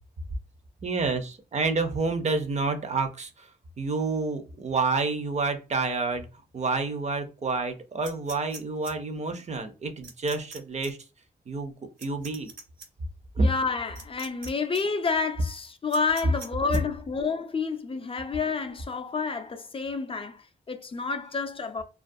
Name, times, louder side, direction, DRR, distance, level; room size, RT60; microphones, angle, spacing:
voice 1, 0.8-3.5 3.8-6.3 6.5-11.0 11.5-11.7 12.0-12.5 13.4-13.5, right 3 dB, 40° right, 0.5 m, -28 dB
sound 1, 8.0-8.9 10.0-10.6 10.8-10.9 12.0-12.9 14.0-14.5 14.7-14.8 15.9-16.8, right 4 dB, 65° right, 1.0 m, -43 dB
voice 2, 13.4-21.8, left 4 dB, 30° left, 0.4 m, -29 dB
2.3 x 2.2 x 2.6 m
cardioid pair, 90°, 19 cm